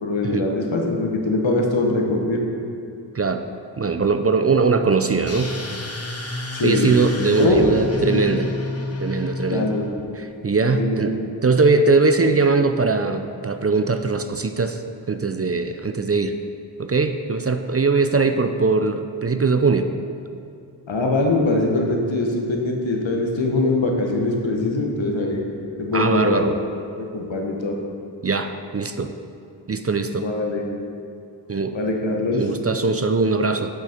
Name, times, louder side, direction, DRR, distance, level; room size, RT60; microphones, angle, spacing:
voice 1, 0.0-2.4 6.5-7.0 7.3-8.3 9.5-9.9 10.8-11.2 20.9-25.4 25.8-26.5 27.0-27.8 30.2-30.7 31.7-32.4, left 2 dB, 75° left, 0 dB, 1.2 m, -22 dB
voice 2, 3.8-5.6 6.6-8.5 9.0-9.7 10.2-11.1 11.4-14.8 15.1-16.4 16.8-19.9 25.9-26.5 28.2-29.1 29.7-30.2 31.5-31.7 32.4-33.7, right 4 dB, 30° right, 7 dB, 0.4 m, -21 dB
sound 1, 5.3-10.0, left 2 dB, 30° left, 1.1 m, -30 dB
8.3 x 6.2 x 4.4 m, 2.4 s
cardioid pair, 40°, 46 cm